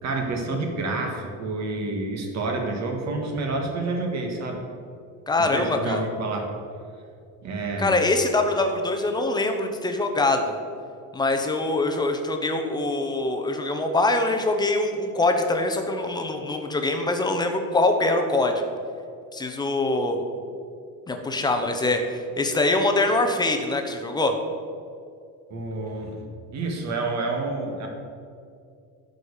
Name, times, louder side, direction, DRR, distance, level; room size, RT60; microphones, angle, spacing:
voice 1, 0.0-4.6 5.5-6.5 7.4-8.0 25.5-26.2 26.5-27.9, right 3 dB, 45° right, 2 dB, 1.8 m, -28 dB
voice 2, 5.3-6.0 7.8-10.5 11.1-18.6 19.3-20.2 21.1-24.3, left 2 dB, 10° left, 4 dB, 0.8 m, -23 dB
11.5 x 5.4 x 6.6 m, 2.4 s
cardioid pair, 155°, 37 cm